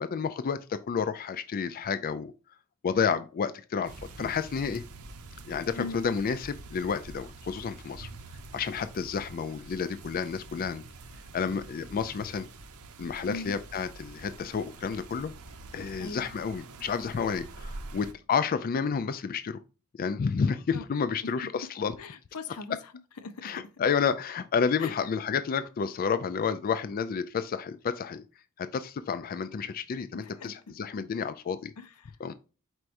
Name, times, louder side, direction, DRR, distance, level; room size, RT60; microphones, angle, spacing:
voice 1, 0.0-2.3 2.8-4.8 5.5-8.1 8.5-10.8 11.3-12.5 13.0-15.3 15.7-19.6 20.0-21.9 23.4-28.2 28.6-31.7 32.2-32.3, left 6 dB, 40° left, 0.3 m, -30 dB
sound 1, 3.8-18.1, right 2 dB, 75° right, 0.7 m, -46 dB
voice 2, 22.0-22.8 23.2-23.6 24.8-24.9 30.1-30.5 31.8-32.1, left 4 dB, 90° left, 0.7 m, -39 dB
4.6 x 4.5 x 2.5 m
head